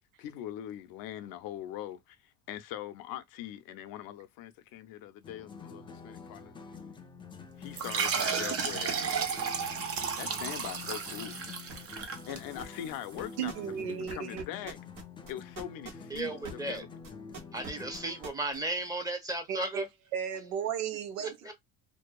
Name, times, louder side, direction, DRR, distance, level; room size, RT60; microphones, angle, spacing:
voice 1, 0.2-6.6 7.6-9.4 10.2-11.4 12.3-13.6 13.9-14.8 15.3-17.0 21.4-21.5, left 12 dB, 60° left, 0.5 m, -42 dB
sound 1, 5.2-18.4, left 5 dB, 15° left, 0.3 m, -48 dB
sound 2, 7.7-12.9, right 6 dB, 35° right, 0.7 m, -33 dB
sound 3, 11.7-16.8 17.0-18.6, right 5 dB, 55° right, 1.1 m, -44 dB
voice 2, 13.4-14.4 19.5-19.9 20.1-21.5, right 8 dB, 90° right, 0.7 m, -34 dB
voice 3, 16.1-16.8 17.5-19.8 21.2-21.5, right 2 dB, 10° right, 0.9 m, -35 dB
2.6 x 2.2 x 2.2 m
supercardioid pair, 95°, 40 cm